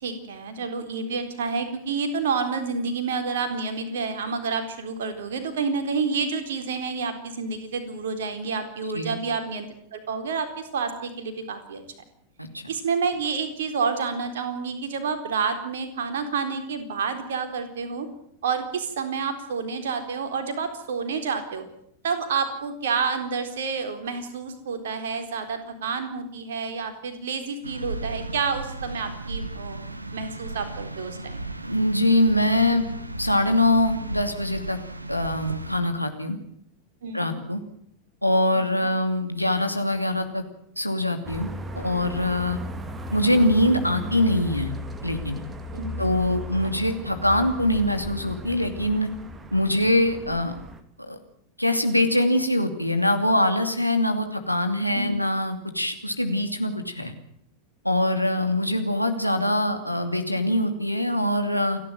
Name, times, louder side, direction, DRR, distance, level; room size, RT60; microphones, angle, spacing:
voice 1, 0.0-11.8 12.7-18.1 18.4-21.7 22.0-31.4 37.0-37.4 38.6-38.9 45.7-46.0 54.9-55.2, right 5 dB, 60° right, 7 dB, 4.0 m, -29 dB
sound 1, 27.6-35.8, right 2 dB, 85° right, 1.4 m, -35 dB
voice 2, 31.6-32.8 33.2-34.8 35.1-36.4 37.1-37.6 38.2-40.4 40.8-41.5 41.7-42.6 43.1-44.7 45.0-45.4 46.0-49.1 49.5-50.5 51.1-51.2 51.6-57.1 57.8-61.8, left 1 dB, 90° left, 6 dB, 2.6 m, -23 dB
sound 2, 41.2-50.8, equal, 15° right, 2.3 m, -36 dB
29.0 x 11.5 x 9.1 m, 0.69 s
figure-of-eight pair, 90°, 0 cm